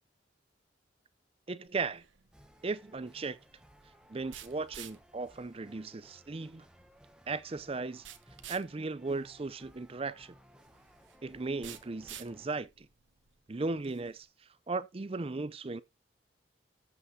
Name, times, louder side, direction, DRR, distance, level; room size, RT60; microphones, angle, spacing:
voice 1, 1.5-2.0 2.6-3.4 4.1-6.7 7.3-8.0 8.5-10.3 11.2-12.9 13.5-14.3 14.7-15.8, right 3 dB, 30° right, 0.5 m, -36 dB
sound 1, 1.7-14.2, right 10 dB, 75° right, 1.0 m, -53 dB
sound 2, 2.3-12.5, equal, 5° right, 0.9 m, -61 dB
14.0 x 5.8 x 2.7 m
head